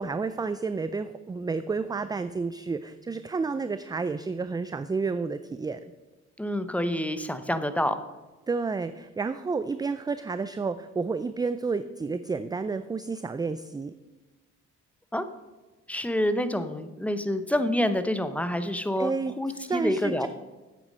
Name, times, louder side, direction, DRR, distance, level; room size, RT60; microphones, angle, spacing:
voice 1, 0.0-5.9 8.5-13.9 19.0-20.3, right 4 dB, 15° right, 12 dB, 0.3 m, -30 dB
voice 2, 6.4-8.0 15.1-15.2 15.9-19.1 19.4-20.3, left 1 dB, 5° left, 10 dB, 0.7 m, -27 dB
8.6 x 8.1 x 5.4 m, 1.2 s
cardioid pair, 90°, 30 cm